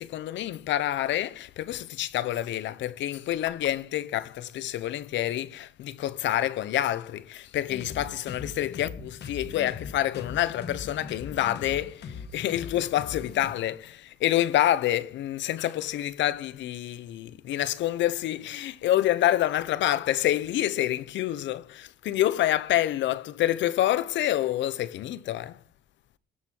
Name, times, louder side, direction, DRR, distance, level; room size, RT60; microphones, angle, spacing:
voice 1, 0.0-25.6, left 13 dB, 80° left, 0.9 m, -27 dB
sound 1, 7.7-13.5, left 5 dB, 60° left, 1.9 m, -40 dB
20.0 x 7.5 x 5.4 m
cardioid pair, 120°, 19 cm